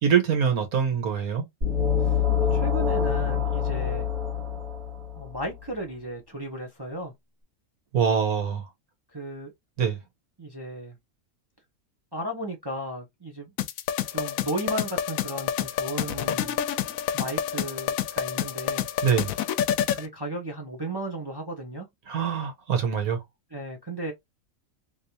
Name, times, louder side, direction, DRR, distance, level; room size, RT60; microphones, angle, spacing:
voice 1, 0.0-1.4 7.9-8.7 9.8-10.0 19.0-19.3 22.1-23.2, right 7 dB, 80° right, 1.7 m, -24 dB
sound 1, 1.6-5.4, left 7 dB, 45° right, 1.9 m, -25 dB
voice 2, 2.5-4.1 5.2-7.1 9.1-9.5 10.4-11.0 12.1-13.5 14.1-16.6 17.1-18.9 19.9-21.9 23.5-24.1, right 1 dB, 20° right, 0.8 m, -35 dB
sound 2, 13.6-20.1, left 10 dB, 75° left, 1.0 m, -28 dB
3.2 x 3.2 x 2.8 m
omnidirectional pair, 1.5 m